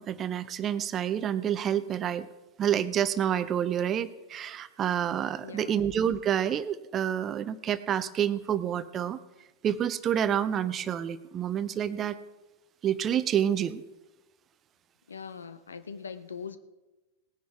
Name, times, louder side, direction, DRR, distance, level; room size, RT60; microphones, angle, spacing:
voice 1, 0.0-2.3 2.6-9.2 9.6-12.2 12.8-13.8, right 9 dB, 30° right, 15 dB, 0.7 m, -28 dB
voice 2, 5.4-5.8 15.1-16.6, left 6 dB, 70° left, 12 dB, 0.8 m, -41 dB
19.0 x 10.0 x 3.6 m, 1.1 s
figure-of-eight pair, 90°, 0 cm